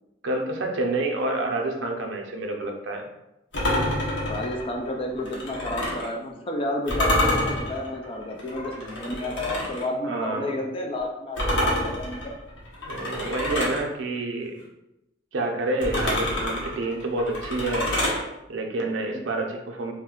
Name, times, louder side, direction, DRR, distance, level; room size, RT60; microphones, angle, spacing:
voice 1, 0.2-3.1 10.0-10.6 12.8-14.5 15.3-17.9 18.5-19.9, right 2 dB, 85° right, 2 dB, 0.5 m, -28 dB
sound 1, 3.5-6.1 6.9-9.9 11.4-13.8 15.8-18.2, left 1 dB, 80° left, 0.8 m, -27 dB
voice 2, 4.2-12.3 19.1-19.2, left 1 dB, 30° left, 2 dB, 0.3 m, -31 dB
2.4 x 2.2 x 3.6 m, 0.90 s
head